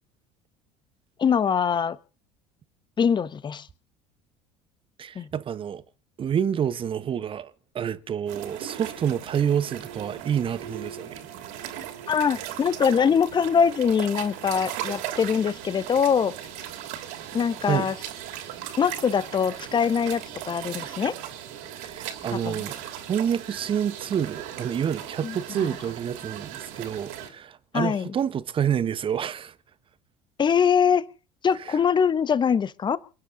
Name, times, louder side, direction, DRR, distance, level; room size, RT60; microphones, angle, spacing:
voice 1, 1.2-2.0 3.0-3.7 5.1-5.3 12.1-16.3 17.3-18.0 18.8-21.2 22.3-22.6 25.2-25.7 27.7-28.1 30.4-31.1 31.4-33.0, left 7 dB, 25° left, 1.1 m, -23 dB
voice 2, 5.0-5.8 6.2-11.2 17.7-17.9 21.8-22.8 23.1-29.5 31.7-31.8, right 8 dB, 30° right, 1.2 m, -28 dB
sound 1, 8.3-27.3, right 11 dB, 55° right, 2.9 m, -38 dB
28.5 x 10.0 x 3.9 m
figure-of-eight pair, 65°, 17 cm